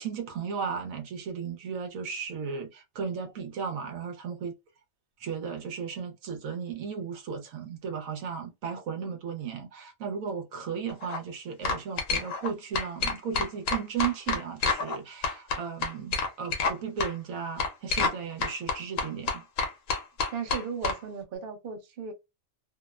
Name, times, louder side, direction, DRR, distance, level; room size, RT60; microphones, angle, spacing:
voice 1, 0.0-4.5 5.2-19.4, right 6 dB, 75° right, 1.1 m, -35 dB
sound 1, 10.9-11.2 11.6-12.5 12.7-15.0 15.2-16.7 17.0-17.1 17.6-18.2 18.4-21.0, left 4 dB, 70° left, 1.0 m, -28 dB
voice 2, 20.3-22.1, right 6 dB, 50° right, 0.7 m, -36 dB
2.7 x 2.0 x 2.3 m
omnidirectional pair, 1.5 m